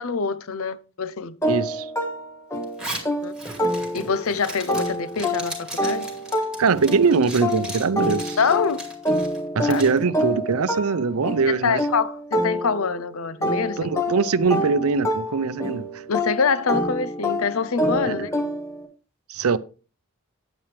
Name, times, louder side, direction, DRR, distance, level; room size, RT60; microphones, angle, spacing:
voice 1, 0.0-1.4 3.2-3.3 3.9-6.1 8.4-8.8 9.6-9.8 11.6-14.3 16.1-18.3, left 5 dB, 75° left, 0.7 m, -25 dB
sound 1, 1.4-4.3 4.7-13.0 13.4-18.9, equal, 15° left, 1.2 m, -27 dB
voice 2, 1.4-1.9 6.6-8.4 9.5-11.8 13.8-16.0 18.0-18.3 19.3-19.6, right 4 dB, 80° right, 0.6 m, -22 dB
Zipper (clothing), 2.6-10.0, right 1 dB, 5° right, 2.2 m, -37 dB
9.3 x 8.8 x 3.4 m
head